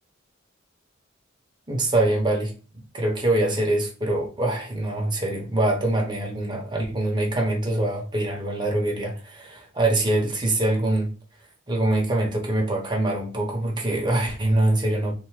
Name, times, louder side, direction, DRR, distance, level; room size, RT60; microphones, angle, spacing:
voice 1, 1.7-2.5 2.9-11.1 11.7-15.1, right 1 dB, 20° right, 0.8 m, -24 dB
3.3 x 2.0 x 3.2 m
head